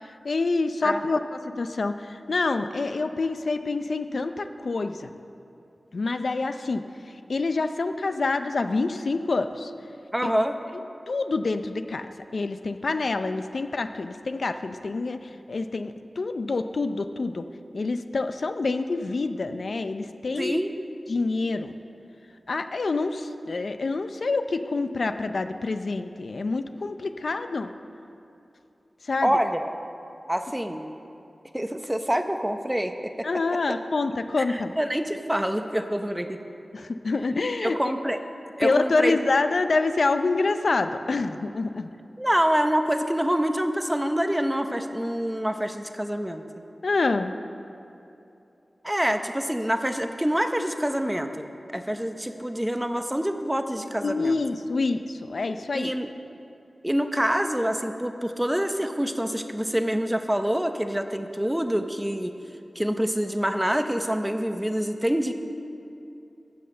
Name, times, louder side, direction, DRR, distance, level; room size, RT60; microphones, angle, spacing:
voice 1, 0.0-1.2 1.6-5.1 5.9-6.8 7.3-9.7 10.2-10.3 11.1-17.5 17.7-20.6 21.1-21.7 22.5-27.7 29.0-29.3 33.2-34.7 36.7-37.9 38.6-41.9 46.8-47.3 54.0-55.9, left 3 dB, 75° left, 9 dB, 0.5 m, -27 dB
voice 2, 10.1-10.5 20.4-20.7 29.2-29.7 30.3-30.9 31.5-32.9 34.4-36.4 37.6-38.2 38.6-39.2 42.2-46.4 48.8-51.5 51.7-54.4 55.7-56.1 56.8-62.3 62.8-65.3, equal, 10° right, 7 dB, 0.7 m, -26 dB
13.0 x 5.6 x 7.7 m, 2.8 s
wide cardioid pair, 65°, 0 cm